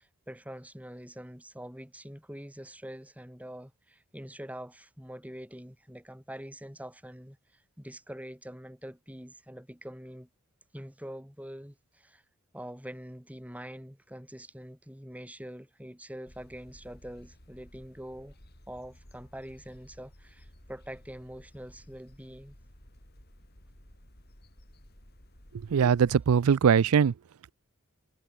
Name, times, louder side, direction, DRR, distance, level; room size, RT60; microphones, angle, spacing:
voice 1, 0.0-10.3 10.7-12.2 12.5-18.3 18.7-22.6, equal, 5° right, 8.0 m, -44 dB
sound 1, 16.3-26.2, equal, 45° left, 6.6 m, -55 dB
voice 2, 25.7-27.1, right 7 dB, 85° right, 0.4 m, -21 dB
head